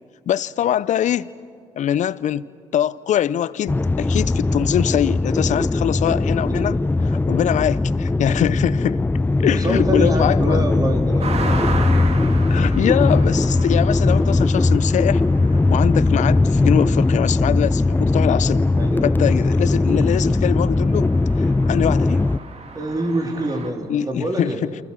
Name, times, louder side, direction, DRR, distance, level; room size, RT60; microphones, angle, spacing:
voice 1, 0.3-1.3 1.8-2.4 2.7-6.8 7.1-9.0 9.4-10.6 12.5-15.2 15.5-18.7 19.0-21.1 21.4-22.3 23.9-24.8, left 10 dB, 60° left, 0.8 m, -23 dB
sound 1, 3.7-22.4, left 2 dB, 15° left, 0.6 m, -19 dB
voice 2, 9.4-11.5 18.8-19.1 22.7-24.6, right 1 dB, 25° right, 4.1 m, -26 dB
sound 2, 11.2-23.7, right 4 dB, 50° right, 3.3 m, -35 dB
28.5 x 24.5 x 7.5 m
hypercardioid pair, 50°, 14 cm